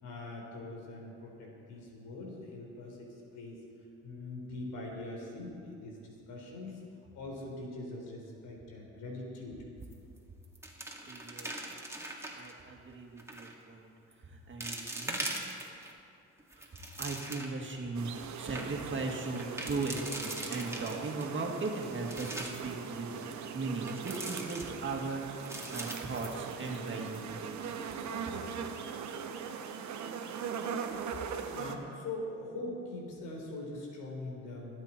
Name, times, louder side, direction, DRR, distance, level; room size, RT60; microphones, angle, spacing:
voice 1, 0.0-3.6 4.0-6.8 7.1-9.6 30.4-30.5 31.1-34.8, left 2 dB, 85° left, -1 dB, 3.7 m, -42 dB
sound 1, 9.8-10.2 10.4-12.5 13.2-13.5 14.1-14.2 14.6-15.9 16.4-17.7 18.1-18.2 18.4-18.6 19.4-21.3 21.7-22.7 23.9-25.0 25.4-26.9 27.1-27.2 27.7-28.0, right 1 dB, 10° right, 2.1 m, -41 dB
voice 2, 11.0-11.5 12.4-13.9 14.2-15.3 16.5-18.1 18.4-27.8 28.3-28.4, right 3 dB, 40° right, 1 dB, 2.2 m, -38 dB
sound 2, 17.9-31.8, right 6 dB, 70° right, 1.1 m, -40 dB
24.0 x 8.8 x 4.4 m, 2.5 s
cardioid pair, 90°, 30 cm